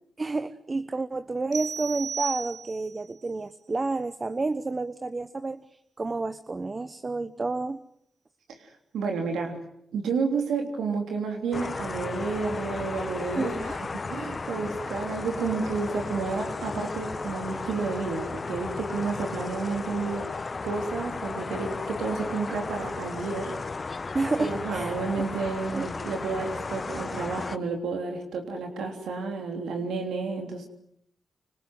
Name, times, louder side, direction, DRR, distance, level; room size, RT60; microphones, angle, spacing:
voice 1, 0.2-5.6 6.0-7.8 13.3-13.7 24.1-25.0 25.7-25.9, right 3 dB, 40° right, 13 dB, 1.1 m, -30 dB
sound 1, 1.5-3.0, right 6 dB, 65° right, 1.2 m, -34 dB
voice 2, 8.5-9.6 9.9-20.3 20.6-23.5 24.4-30.7, right 4 dB, 85° right, 3 dB, 3.4 m, -31 dB
sound 2, 11.5-27.6, left 4 dB, 45° left, 1.1 m, -34 dB
26.0 x 25.5 x 7.9 m, 0.74 s
supercardioid pair, 45°, 0 cm